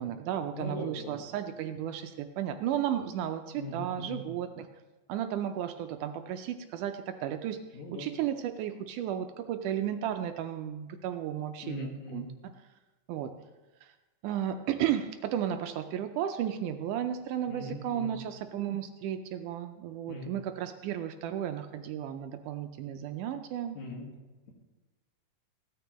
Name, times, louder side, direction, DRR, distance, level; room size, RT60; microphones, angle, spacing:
voice 1, 0.0-4.7 5.1-7.6 7.9-12.3 13.1-13.3 13.8-13.9 14.2-23.8, right 10 dB, 80° right, 7 dB, 2.0 m, -34 dB
voice 2, 0.5-1.2 3.6-4.2 7.7-8.1 11.6-12.2 17.5-18.1 20.1-20.3 23.7-24.1, left 2 dB, 60° left, 0 dB, 3.0 m, -40 dB
16.5 x 12.5 x 3.0 m, 1.1 s
omnidirectional pair, 3.9 m